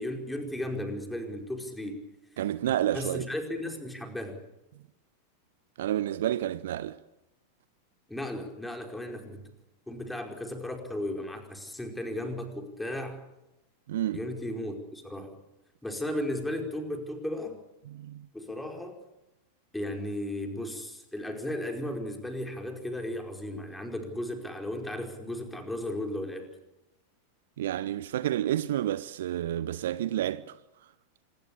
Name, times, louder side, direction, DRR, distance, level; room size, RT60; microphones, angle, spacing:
voice 1, 0.0-2.0 2.7-4.4 8.1-9.4 9.9-13.2 14.1-15.3 15.8-17.6 18.3-19.0 19.7-26.5, left 1 dB, 5° left, 4.8 m, -35 dB
voice 2, 2.4-3.3 5.8-7.0 13.9-14.2 17.9-18.3 27.6-30.6, right 12 dB, 60° right, 0.8 m, -30 dB
26.5 x 21.5 x 7.1 m
figure-of-eight pair, 90°, 0 cm